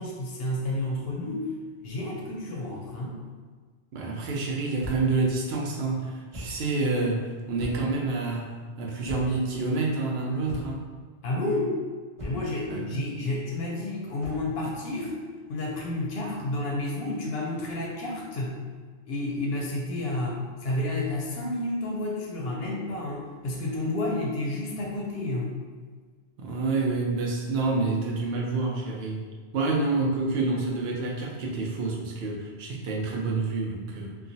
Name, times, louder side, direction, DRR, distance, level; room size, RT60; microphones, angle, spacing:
voice 1, 0.0-1.5 1.8-3.2 11.2-11.8 12.2-15.2 15.5-18.5 19.1-25.6, left 2 dB, 70° left, -2 dB, 0.7 m, -30 dB
voice 2, 3.9-8.5 8.8-10.8 12.7-13.1 26.4-29.2 29.5-34.2, right 3 dB, 70° right, -2 dB, 0.8 m, -28 dB
sound 1, 4.8-5.2 6.3-6.6 7.6-8.0 9.0-9.5 10.5-10.9 12.2-12.6 14.2-14.5, left 1 dB, 30° right, 1.0 m, -39 dB
2.9 x 2.3 x 2.6 m, 1.5 s
omnidirectional pair, 1.1 m